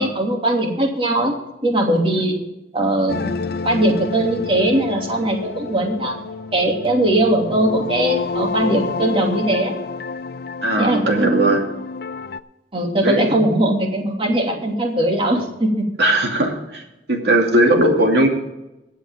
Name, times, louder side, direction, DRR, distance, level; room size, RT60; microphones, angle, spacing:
voice 1, 0.0-1.3 1.6-2.4 2.7-3.4 3.6-6.1 6.5-9.7 10.8-11.6 12.7-15.9, right 1 dB, 30° right, 1 dB, 2.7 m, -20 dB
sound 1, 3.1-12.4, left 4 dB, 60° left, 0.6 m, -29 dB
voice 2, 10.6-11.7 13.0-13.4 16.0-16.8 17.1-18.3, right 1 dB, 65° right, 1 dB, 2.7 m, -18 dB
23.5 x 8.1 x 3.7 m, 0.97 s
head